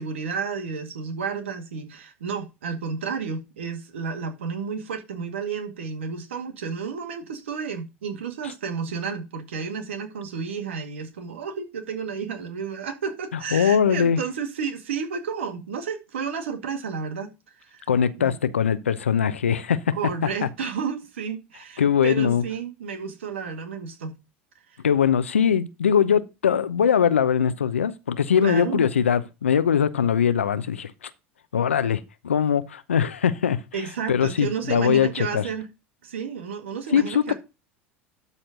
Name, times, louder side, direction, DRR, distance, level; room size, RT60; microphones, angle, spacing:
voice 1, 0.0-17.3 17.7-17.9 18.2-18.4 19.9-24.2 28.4-28.8 33.7-35.7 36.0-37.3, right 6 dB, 80° right, 2.1 m, -31 dB
voice 2, 13.5-14.2 17.9-20.0 20.4-20.5 21.8-22.4 24.8-30.9 31.5-33.6 34.1-35.4 36.9-37.3, left 8 dB, 85° left, 0.8 m, -21 dB
12.5 x 4.4 x 5.2 m
hypercardioid pair, 75°, 7 cm